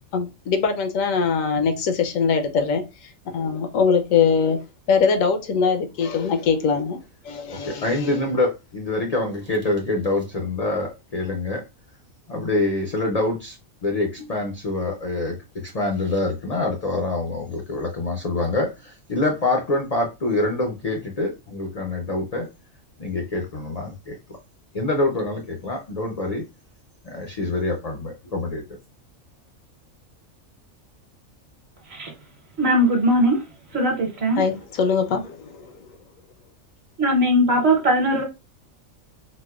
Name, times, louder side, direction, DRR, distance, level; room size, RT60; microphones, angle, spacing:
voice 1, 0.1-4.6 4.9-7.0 7.2-8.2 34.4-35.8, left 5 dB, 80° left, 1.0 m, -22 dB
voice 2, 7.6-11.6 12.3-13.6 13.8-22.5 23.0-24.2 24.7-26.4 27.0-28.6, left 2 dB, 55° left, 0.4 m, -25 dB
voice 3, 32.6-33.4 33.7-34.4 37.0-38.2, equal, 55° right, 1.2 m, -19 dB
4.1 x 2.1 x 2.3 m
omnidirectional pair, 1.4 m